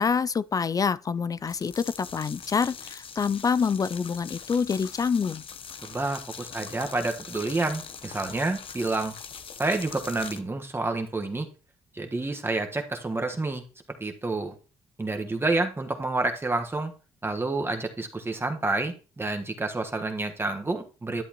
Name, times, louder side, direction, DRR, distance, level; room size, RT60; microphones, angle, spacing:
voice 1, 0.0-5.4, left 6 dB, 35° left, 0.3 m, -26 dB
sound 1, 1.4-10.4, left 6 dB, 55° left, 0.9 m, -42 dB
voice 2, 5.8-9.2 9.6-11.5 11.9-13.6 14.0-14.5 15.0-16.9 17.2-21.2, right 2 dB, 20° right, 1.4 m, -29 dB
11.0 x 7.8 x 3.0 m
cardioid pair, 70°, 11 cm